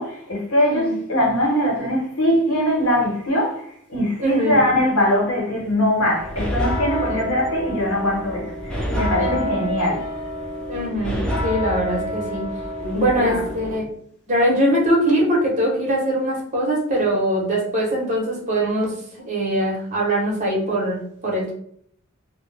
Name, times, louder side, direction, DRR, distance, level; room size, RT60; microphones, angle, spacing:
voice 1, 0.0-10.0 12.8-13.4, left 1 dB, 85° left, -2 dB, 1.1 m, -22 dB
voice 2, 0.6-1.0 4.2-4.6 7.1-7.3 9.2-9.4 10.7-12.5 12.9-13.9 14.3-21.5, right 1 dB, 35° right, -2 dB, 0.8 m, -22 dB
sound 1, 6.2-13.8, equal, 5° left, 0.4 m, -27 dB
2.2 x 2.1 x 3.2 m, 0.64 s
head